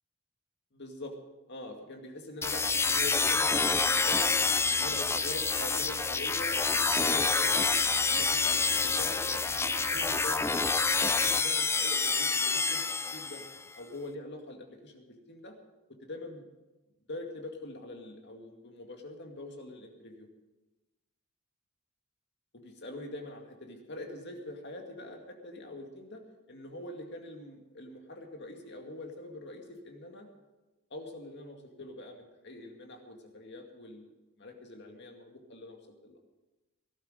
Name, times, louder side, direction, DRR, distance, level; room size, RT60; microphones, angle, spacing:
voice 1, 0.7-1.1 1.5-4.3 4.6-7.6 7.9-10.6 11.0-12.8 13.1-13.4 13.7-15.5 16.0-16.5 17.1-20.3 22.5-26.2 26.5-30.3 30.9-34.1 34.4-35.8 36.0-36.2, left 1 dB, 60° left, 3 dB, 2.3 m, -44 dB
sound 1, 2.4-13.6, left 4 dB, 15° left, 0.4 m, -27 dB
18.0 x 11.5 x 5.2 m, 1.1 s
head